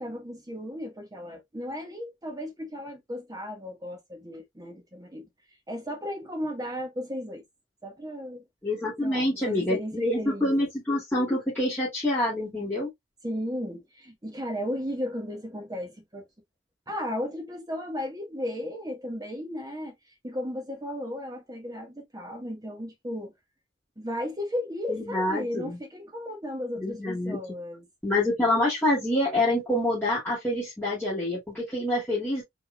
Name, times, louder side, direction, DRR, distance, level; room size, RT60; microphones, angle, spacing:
voice 1, 0.0-5.3 5.7-7.4 7.8-8.4 9.0-10.7 13.2-16.3 16.9-19.9 20.2-23.3 24.0-27.9, equal, 20° right, 1.5 m, -35 dB
voice 2, 8.6-12.9 24.9-25.8 26.8-27.4 28.0-32.4, left 1 dB, 10° left, 2.4 m, -26 dB
4.9 x 3.9 x 2.3 m
head